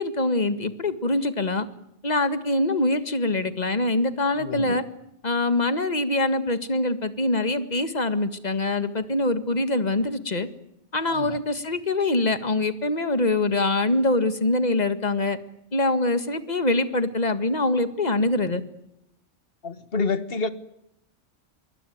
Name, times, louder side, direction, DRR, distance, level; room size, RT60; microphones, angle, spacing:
voice 1, 0.0-1.7 2.0-4.8 5.2-10.5 10.9-15.4 15.7-18.6, left 2 dB, 40° left, 1.9 m, -24 dB
voice 2, 4.4-4.8 11.1-11.4 19.6-20.5, left 4 dB, 55° left, 1.7 m, -28 dB
25.0 x 23.5 x 9.4 m
omnidirectional pair, 1.2 m